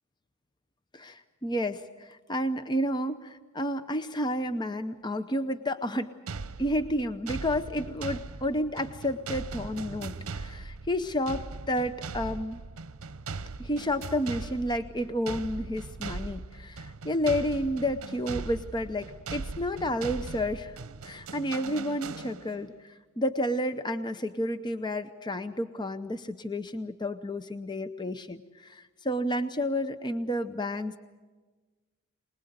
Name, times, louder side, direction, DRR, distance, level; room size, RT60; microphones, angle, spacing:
voice 1, 0.9-6.1 6.6-12.6 13.6-20.8 21.0-31.0, equal, 20° left, 10 dB, 0.6 m, -31 dB
sound 1, 6.3-22.7, right 4 dB, 75° right, 0.8 m, -40 dB
24.5 x 20.5 x 8.0 m, 1.3 s
head